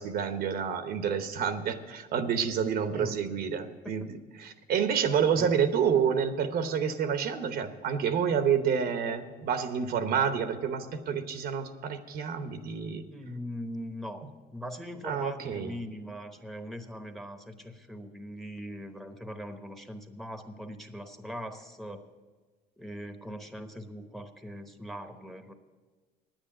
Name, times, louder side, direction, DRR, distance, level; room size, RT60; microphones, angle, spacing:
voice 1, 0.0-13.0 15.0-15.8, right 7 dB, 65° right, 9 dB, 0.9 m, -29 dB
voice 2, 2.8-3.2 3.8-3.9 5.3-5.5 13.1-22.0 22.8-25.5, equal, ahead, 7 dB, 0.9 m, -41 dB
9.7 x 9.0 x 8.7 m, 1.4 s
cardioid pair, 110°, 17 cm